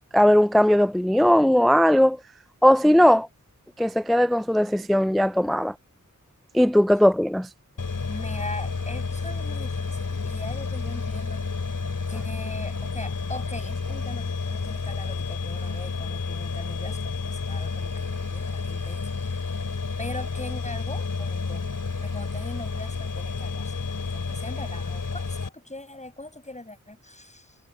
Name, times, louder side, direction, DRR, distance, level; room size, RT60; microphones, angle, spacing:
voice 1, 0.1-2.2 2.6-3.3 3.8-5.7 6.5-7.5, equal, ahead, 0.4 m, -18 dB
sound 1, 7.8-25.5, left 4 dB, 70° left, 3.5 m, -30 dB
voice 2, 8.1-11.8 12.1-19.6 20.0-21.6 22.0-27.6, left 1 dB, 20° left, 7.4 m, -40 dB
wide cardioid pair, 65°, 32 cm